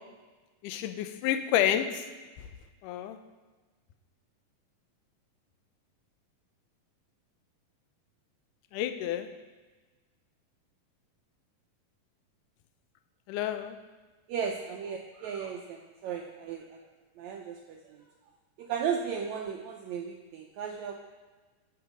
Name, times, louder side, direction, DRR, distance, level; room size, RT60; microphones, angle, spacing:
voice 1, 0.6-2.0 2.8-3.2 8.7-9.3 13.3-13.8, left 11 dB, 80° left, 8 dB, 2.1 m, -29 dB
voice 2, 14.3-16.8 17.2-18.0 18.6-20.9, right 7 dB, 90° right, 2 dB, 1.6 m, -35 dB
14.0 x 6.2 x 5.1 m, 1.3 s
omnidirectional pair, 3.9 m